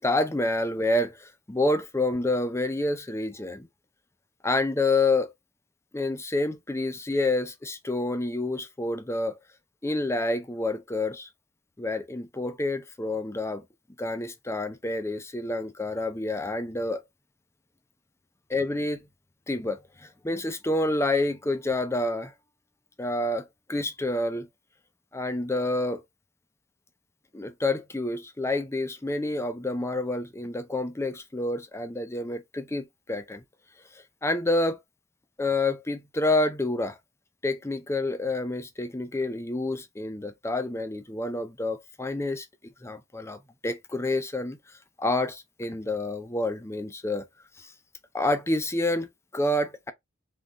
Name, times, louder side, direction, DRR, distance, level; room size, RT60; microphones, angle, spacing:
voice 1, 0.0-3.7 4.4-5.3 5.9-9.4 9.8-11.3 11.8-13.6 14.0-17.0 18.5-19.0 19.5-22.3 23.0-24.5 25.1-26.0 27.3-33.4 34.2-34.8 35.4-37.0 37.4-42.5 42.8-44.6 45.0-47.2 47.6-47.7 48.1-49.9, left 2 dB, 15° left, 0.6 m, -28 dB
3.7 x 3.0 x 4.0 m
head